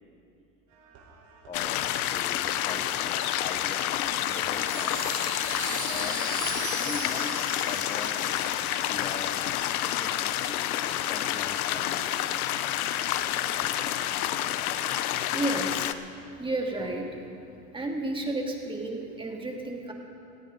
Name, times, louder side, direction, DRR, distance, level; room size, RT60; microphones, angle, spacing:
sound 1, 0.7-15.2, right 4 dB, 50° right, 4.1 m, -54 dB
sound 2, 1.5-15.9, left 12 dB, 80° left, 0.8 m, -29 dB
voice 1, 1.5-3.9 4.3-5.0 5.8-6.3 6.8-7.3 7.6-8.5 8.9-9.4 10.0-10.6 11.1-12.2, left 4 dB, 15° left, 3 dB, 1.0 m, -41 dB
Chime, 4.1-9.7, right 6 dB, 90° right, 4.0 m, -39 dB
voice 2, 15.3-16.0 16.4-17.1 17.7-19.9, right 2 dB, 10° right, 0 dB, 2.3 m, -31 dB
18.0 x 17.5 x 3.8 m, 2.7 s
supercardioid pair, 115°, 43 cm